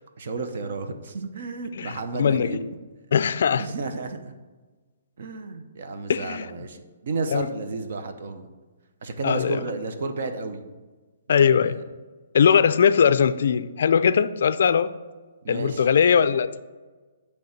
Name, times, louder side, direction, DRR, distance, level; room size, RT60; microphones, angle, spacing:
voice 1, 0.2-2.6 3.6-4.4 5.2-8.5 9.0-10.6 11.3-11.8 15.4-15.9, right 3 dB, 55° right, 8 dB, 0.8 m, -32 dB
voice 2, 1.7-2.7 3.1-3.7 6.1-6.5 7.3-7.5 9.2-9.6 11.3-11.8 12.3-14.9 15.5-16.6, left 7 dB, 60° left, 14 dB, 0.3 m, -20 dB
8.3 x 3.5 x 6.5 m, 1.3 s
hypercardioid pair, 165°, 0 cm